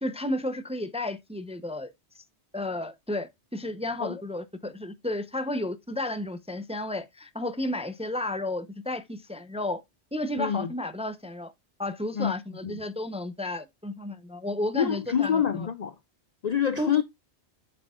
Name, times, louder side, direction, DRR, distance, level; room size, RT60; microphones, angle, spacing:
voice 1, 0.0-1.9 2.5-9.8 10.1-11.5 11.8-15.7 16.8-17.0, left 1 dB, 5° right, 0.5 m, -32 dB
voice 2, 10.4-10.7 12.1-12.3 12.6-12.8 14.7-16.0 16.4-17.0, left 8 dB, 55° left, 0.5 m, -26 dB
7.9 x 6.7 x 2.4 m
omnidirectional pair, 1.1 m